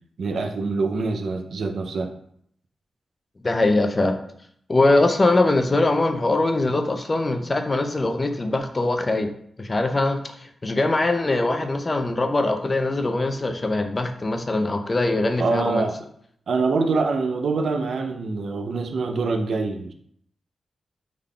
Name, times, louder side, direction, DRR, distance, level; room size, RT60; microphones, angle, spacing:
voice 1, 0.2-2.1 15.4-16.0 16.5-19.9, right 3 dB, 70° right, 5 dB, 0.4 m, -25 dB
voice 2, 3.4-4.2 4.7-9.3 9.6-15.9, left 2 dB, 30° left, 6 dB, 0.4 m, -22 dB
3.5 x 2.2 x 3.6 m, 0.67 s
wide cardioid pair, 105°, 0 cm